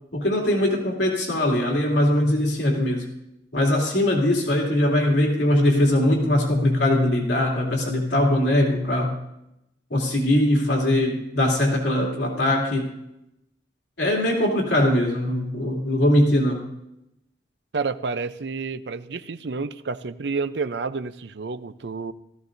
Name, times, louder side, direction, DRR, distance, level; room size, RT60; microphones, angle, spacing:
voice 1, 0.1-3.1 3.5-9.1 9.9-12.9 14.0-16.6, left 1 dB, 85° left, -1 dB, 2.7 m, -21 dB
voice 2, 17.7-22.1, right 4 dB, 75° right, 13 dB, 0.6 m, -29 dB
16.0 x 14.5 x 2.6 m, 0.85 s
head